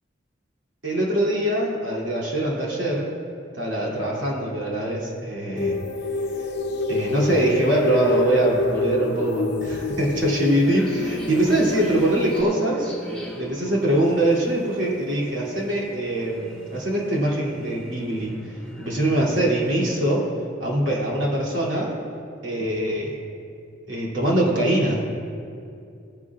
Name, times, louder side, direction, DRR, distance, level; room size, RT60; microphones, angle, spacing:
voice 1, 0.8-3.1 3.5-5.8 6.9-12.9 13.4-18.3 18.8-20.2 20.6-22.0 22.4-23.2 23.9-25.0, right 1 dB, 75° right, -5 dB, 2.9 m, -23 dB
sound 1, 5.6-12.4, left 3 dB, 60° left, 0.8 m, -27 dB
sound 2, 10.6-20.0, equal, 5° left, 1.6 m, -41 dB
17.5 x 10.5 x 2.5 m, 2.5 s
head